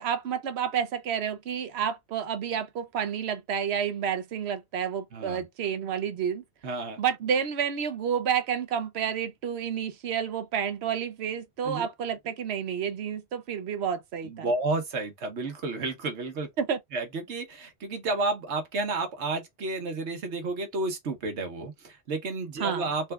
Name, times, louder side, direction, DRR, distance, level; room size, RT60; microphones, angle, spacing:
voice 1, 0.0-6.4 7.0-14.5 16.6-16.8 22.6-22.9, right 8 dB, 70° right, 0.9 m, -30 dB
voice 2, 6.6-7.0 11.6-11.9 14.2-16.5 16.9-23.1, right 3 dB, 90° right, 1.3 m, -31 dB
3.8 x 2.3 x 3.3 m
omnidirectional pair, 1.1 m